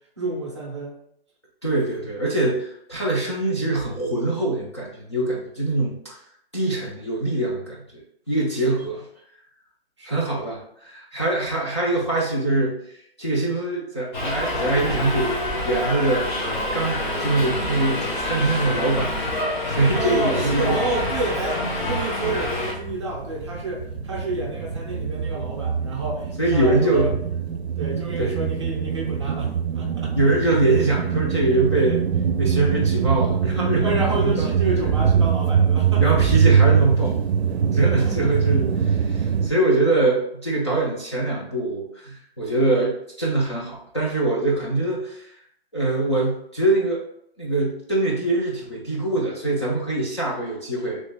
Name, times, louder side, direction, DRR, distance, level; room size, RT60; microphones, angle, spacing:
voice 1, 0.2-0.9 8.5-8.8 10.0-10.2 20.0-27.1 27.8-30.3 33.8-36.2 37.8-38.3, right 2 dB, 30° right, -2 dB, 0.5 m, -29 dB
voice 2, 1.6-6.2 6.5-8.0 8.3-9.0 10.0-15.4 15.6-16.3 16.7-19.2 19.7-20.8 26.4-27.2 28.0-28.3 30.2-32.0 32.4-34.5 36.0-37.2 37.6-45.3 45.7-47.0 47.4-51.0, right 2 dB, 30° left, -5 dB, 0.4 m, -23 dB
Subway metro underground, 14.1-22.7, left 1 dB, 50° left, 1.0 m, -27 dB
sound 1, 19.8-21.4 21.7-39.5, right 7 dB, 85° right, 0.5 m, -23 dB
sound 2, 22.3-29.2, left 6 dB, 85° left, 1.3 m, -46 dB
3.0 x 2.8 x 3.2 m, 0.71 s
hypercardioid pair, 165°, 32 cm